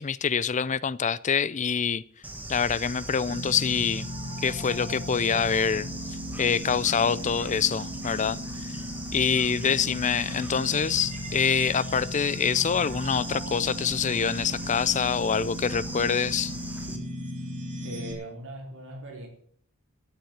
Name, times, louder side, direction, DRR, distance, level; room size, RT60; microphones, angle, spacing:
voice 1, 0.0-2.0 2.5-4.1 4.4-5.9 6.4-8.4 9.1-16.5, left 6 dB, 35° left, 0.5 m, -25 dB
Bird / Insect, 2.2-17.0, right 1 dB, 5° right, 1.7 m, -39 dB
sound 1, 3.3-18.1, left 1 dB, 35° right, 3.2 m, -37 dB
voice 2, 17.8-19.3, right 1 dB, 60° right, 4.6 m, -40 dB
14.0 x 7.5 x 9.5 m
head